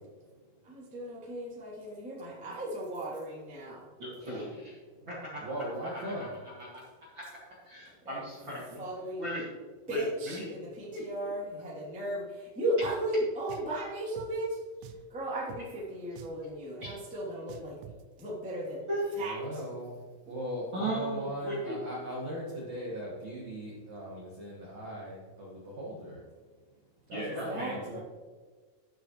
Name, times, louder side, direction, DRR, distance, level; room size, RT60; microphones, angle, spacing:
voice 1, 0.6-3.9 4.2-4.4 8.0-8.2 8.8-9.3 9.9-14.7 15.1-17.8 18.2-18.9 19.1-19.6 27.2-28.0, right 1 dB, 5° right, -6 dB, 1.3 m, -36 dB
voice 2, 4.0-4.7 5.1-5.5 5.9-6.1 7.1-7.2 7.6-8.8 9.2-9.4 9.9-10.5 10.9-11.3 16.8-16.9 18.9-19.2 20.7-21.7 27.1-28.0, right 1 dB, 40° right, -7 dB, 1.7 m, -37 dB
voice 3, 5.4-6.4 19.2-26.3 27.1-28.0, equal, 60° right, -5 dB, 1.9 m, -39 dB
Drum, 12.8-13.0 13.5-13.8 14.2-14.3 14.8-15.1 15.5-15.6 16.2-16.4 16.8-17.0 17.5-18.0, right 10 dB, 85° right, 3.1 m, -47 dB
13.5 x 7.1 x 3.1 m, 1.5 s
omnidirectional pair, 5.6 m